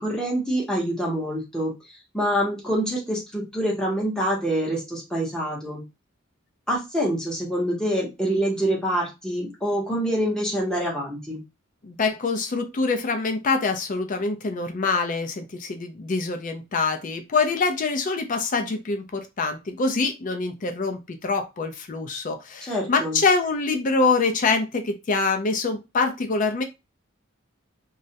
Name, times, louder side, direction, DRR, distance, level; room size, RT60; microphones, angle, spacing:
voice 1, 0.0-1.7 2.1-5.8 6.7-11.4 22.7-23.2, equal, 5° left, -4 dB, 0.7 m, -26 dB
voice 2, 11.8-26.6, left 4 dB, 40° left, 6 dB, 0.4 m, -25 dB
2.3 x 2.0 x 2.7 m, 0.24 s
head